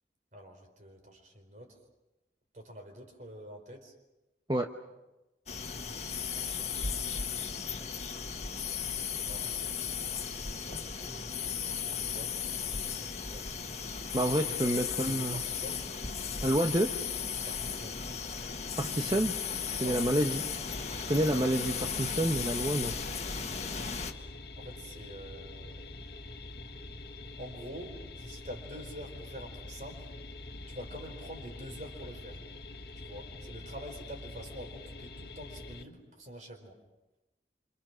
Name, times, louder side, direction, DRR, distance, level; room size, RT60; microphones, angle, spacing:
voice 1, 0.3-1.8 2.5-3.9 6.0-6.1 9.2-13.5 14.5-15.8 17.4-18.0 19.8-20.4 23.6-23.9 24.5-25.9 27.4-30.1 30.7-32.4 32.9-36.8, equal, 45° right, 3 dB, 4.8 m, -47 dB
sound 1, 5.5-24.1, left 6 dB, 40° left, 1.8 m, -36 dB
voice 2, 14.1-15.4 16.4-16.9 18.8-19.4 19.8-20.4 21.0-22.9, right 1 dB, 25° right, 4 dB, 1.0 m, -28 dB
sound 2, 20.7-35.8, left 2 dB, 65° left, 1.8 m, -45 dB
27.5 x 27.5 x 6.3 m, 0.99 s
head